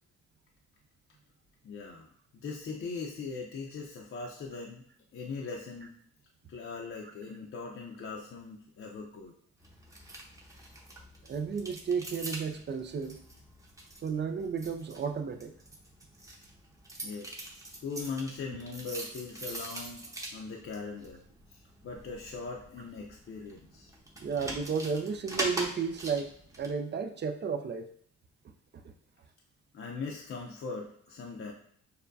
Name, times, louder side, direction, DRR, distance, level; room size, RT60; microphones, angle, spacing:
voice 1, 1.6-4.8 5.1-5.9 6.5-9.3 17.0-17.4 17.8-20.0 20.3-21.2 21.5-23.9 29.7-31.5, left 4 dB, 45° left, 0 dB, 0.6 m, -40 dB
sound 1, 9.6-26.7, right 1 dB, 10° right, 0.8 m, -43 dB
voice 2, 11.3-13.2 14.0-15.5 24.2-27.9 28.8-28.9, right 6 dB, 35° right, 7 dB, 0.4 m, -33 dB
6.6 x 2.2 x 2.6 m, 0.63 s
cardioid pair, 90°, 30 cm